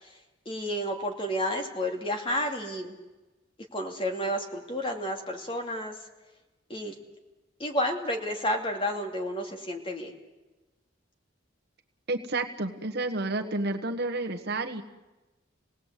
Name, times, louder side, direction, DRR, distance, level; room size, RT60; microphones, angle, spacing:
voice 1, 0.5-3.0 3.7-5.9 6.7-6.9 7.6-10.1, equal, 30° left, 4 dB, 2.6 m, -31 dB
voice 2, 12.1-14.8, right 2 dB, 60° right, 4 dB, 1.4 m, -30 dB
27.5 x 19.0 x 8.3 m, 1.1 s
head